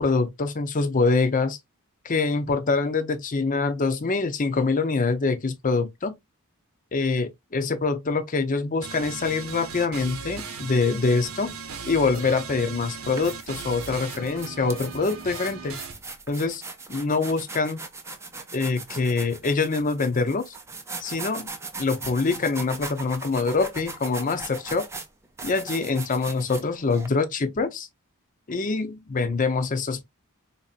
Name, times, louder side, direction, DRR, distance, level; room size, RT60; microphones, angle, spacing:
voice 1, 0.0-1.6 2.0-6.2 6.9-11.5 11.8-15.8 16.3-16.6 16.9-17.8 18.5-20.5 21.0-21.5 21.8-24.9 25.4-27.9 28.5-30.0, left 4 dB, 35° left, 0.6 m, -25 dB
sound 1, 8.8-15.9, right 5 dB, 70° right, 0.8 m, -38 dB
sound 2, 12.3-12.4 12.9-27.1, right 3 dB, 10° right, 0.5 m, -39 dB
4.0 x 2.7 x 2.4 m
head